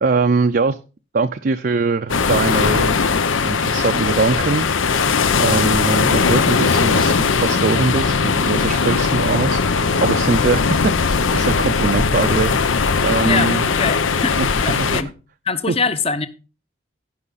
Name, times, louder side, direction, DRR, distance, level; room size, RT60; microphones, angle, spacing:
voice 1, 0.0-0.8 1.1-3.0 3.4-5.0 5.4-13.7 14.4-14.5 14.7-15.0 15.7-15.8, right 4 dB, 50° right, 0.5 m, -22 dB
sound 1, 2.1-15.0, left 5 dB, 85° left, 0.7 m, -19 dB
voice 2, 13.3-15.1 15.5-16.3, left 4 dB, 30° left, 0.8 m, -24 dB
15.5 x 5.7 x 4.0 m
head